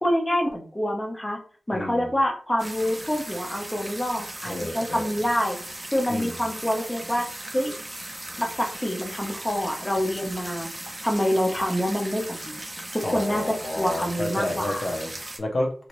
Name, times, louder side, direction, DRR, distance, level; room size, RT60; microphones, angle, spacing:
voice 1, 0.0-1.4 1.7-5.6 5.9-7.3 7.5-7.7 8.4-10.7 11.0-12.5 12.9-13.4 13.8-14.9, equal, 15° left, 1 dB, 0.9 m, -26 dB
voice 2, 1.7-2.1 4.4-5.2 6.1-6.4 13.0-15.9, left 1 dB, 65° left, 0 dB, 0.8 m, -30 dB
sound 1, 2.6-15.4, right 1 dB, 25° right, 0.7 m, -38 dB
3.2 x 2.9 x 3.0 m, 0.42 s
wide cardioid pair, 85°, 0 cm